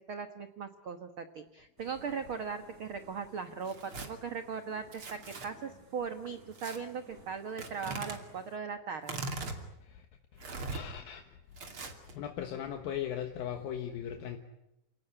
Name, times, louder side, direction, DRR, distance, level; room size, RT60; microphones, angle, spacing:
voice 1, 0.1-9.2, right 6 dB, 70° right, 9 dB, 1.2 m, -39 dB
sound 1, 1.8-8.6, right 1 dB, 20° right, 5.7 m, -58 dB
Tearing, 3.6-4.1 4.9-5.5 6.5-6.8 7.6-8.2 9.0-9.6 10.4-10.8 11.6-12.1, right 3 dB, 40° right, 3.2 m, -40 dB
voice 2, 10.3-11.2 12.1-14.4, left 10 dB, 75° left, 6 dB, 3.0 m, -38 dB
28.5 x 18.0 x 9.9 m, 0.89 s
omnidirectional pair, 4.4 m